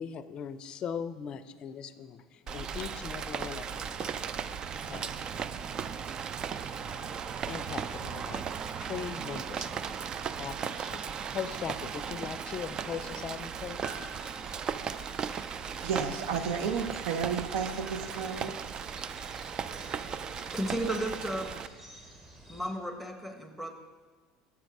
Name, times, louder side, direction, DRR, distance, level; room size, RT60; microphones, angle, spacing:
voice 1, 0.0-4.1 4.9-5.1 6.9-7.2 7.4-8.4 8.8-9.9 10.4-13.8, left 7 dB, 45° left, 13 dB, 0.4 m, -40 dB
Rain, 2.5-21.7, right 7 dB, 40° right, 0.3 m, -37 dB
sound 1, 13.7-22.7, right 1 dB, 20° right, 1.4 m, -50 dB
voice 2, 15.8-18.5, right 6 dB, 70° right, 7 dB, 0.8 m, -32 dB
voice 3, 20.5-21.5 22.5-23.7, right 1 dB, 5° right, 6 dB, 1.0 m, -33 dB
7.2 x 6.3 x 4.8 m, 1.4 s
supercardioid pair, 95°, 2 cm